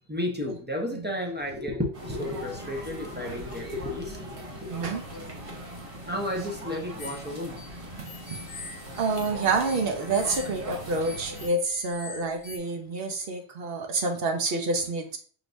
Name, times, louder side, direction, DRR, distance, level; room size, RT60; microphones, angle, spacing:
voice 1, 0.1-4.9 6.1-7.6, left 1 dB, 10° right, 0.6 m, -32 dB
sound 1, 1.9-11.5, equal, 35° right, 0.9 m, -40 dB
voice 2, 4.7-5.0 8.0-8.7 9.0-15.2, right 3 dB, 65° right, 0.9 m, -28 dB
sound 2, 7.0-12.6, left 3 dB, 55° left, 1.0 m, -44 dB
4.8 x 3.2 x 2.5 m
omnidirectional pair, 1.1 m